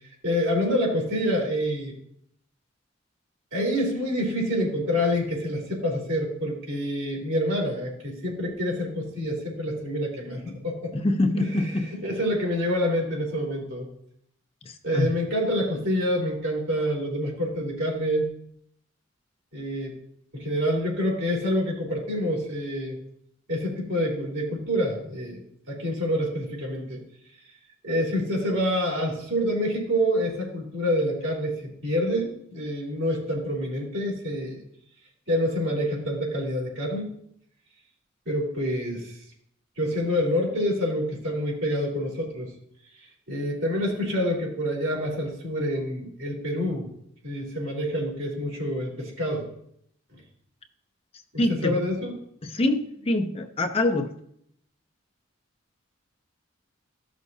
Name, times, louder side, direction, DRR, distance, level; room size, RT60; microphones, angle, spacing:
voice 1, 0.2-1.9 3.5-10.9 11.4-11.7 12.0-13.9 14.8-18.3 19.5-20.0 20.3-23.0 23.5-25.4 25.7-27.0 27.8-34.6 35.3-37.2 38.3-39.1 39.8-42.5 43.3-46.9 47.2-49.5 51.3-52.1, equal, 75° right, -2 dB, 3.6 m, -27 dB
voice 2, 10.9-11.9 14.6-15.2 51.4-51.8 52.4-54.1, left 1 dB, 30° left, 6 dB, 0.6 m, -25 dB
14.5 x 6.2 x 2.7 m, 0.68 s
head